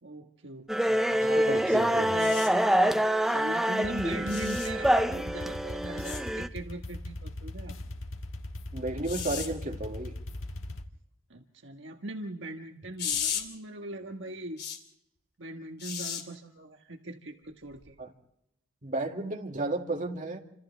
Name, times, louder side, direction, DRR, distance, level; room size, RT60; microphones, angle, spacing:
voice 1, 0.0-2.4 3.3-7.8 11.3-14.6 15.4-18.0, right 1 dB, 65° right, 1.5 m, -41 dB
sound 1, 0.7-6.5, equal, ahead, 0.7 m, -26 dB
voice 2, 1.2-2.2 8.7-10.2 18.0-18.1 18.8-20.4, right 2 dB, 40° right, 2.2 m, -33 dB
sound 2, 2.2-2.5 4.3-4.7 6.0-6.2 9.0-9.5 13.0-13.4 14.6-14.8 15.8-16.2 17.7-17.9, left 8 dB, 55° left, 3.0 m, -34 dB
sound 3, 3.8-10.8, left 1 dB, 75° left, 1.5 m, -40 dB
29.0 x 26.5 x 3.4 m
head